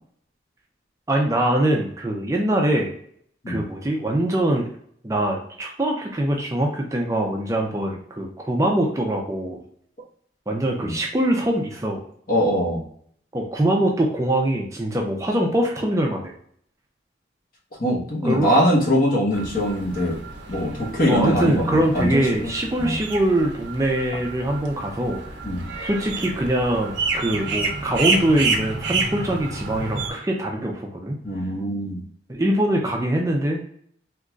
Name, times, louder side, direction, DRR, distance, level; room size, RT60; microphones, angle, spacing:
voice 1, 1.1-2.9 3.5-4.7 5.0-9.6 10.5-12.0 13.3-16.3 18.2-18.5 21.1-25.2 25.8-31.2 32.3-33.6, right 1 dB, 15° right, 0 dB, 0.4 m, -23 dB
voice 2, 12.3-12.8 17.8-20.2 20.5-22.5 22.8-23.0 25.4-25.7 31.2-32.0, equal, 50° left, -3 dB, 1.1 m, -22 dB
sound 1, 19.3-30.1, right 3 dB, 85° right, 0.6 m, -29 dB
3.8 x 2.9 x 2.3 m, 0.63 s
head